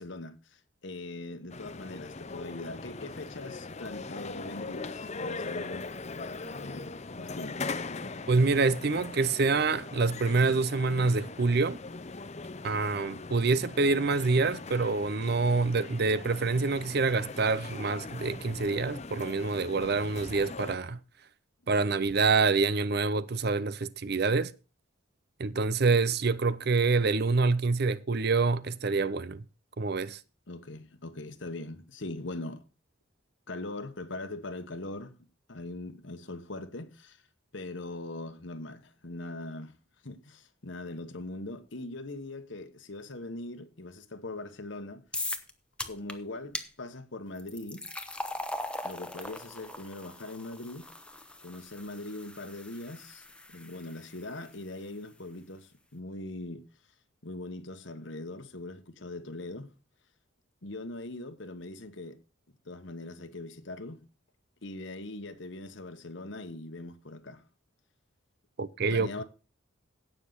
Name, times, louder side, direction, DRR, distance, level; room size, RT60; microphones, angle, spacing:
voice 1, 0.0-7.7 30.5-32.6 33.5-35.1 35.5-37.2 37.5-39.7 40.0-45.0 45.8-47.9 48.8-50.9 51.4-53.2 53.5-56.6 57.2-59.7 60.6-62.2 62.6-64.1 64.6-67.4 68.9-69.2, left 2 dB, 65° left, 1.3 m, -41 dB
sound 1, 1.5-20.8, left 3 dB, 35° left, 0.7 m, -40 dB
voice 2, 8.3-11.8 12.6-21.0 21.7-24.5 25.4-29.4 29.8-30.2 68.6-69.1, right 4 dB, 50° right, 0.6 m, -26 dB
sound 2, 45.1-45.5 45.8-46.1 46.5-46.7 47.4-54.5, left 2 dB, 5° left, 0.9 m, -40 dB
17.0 x 6.7 x 4.0 m
head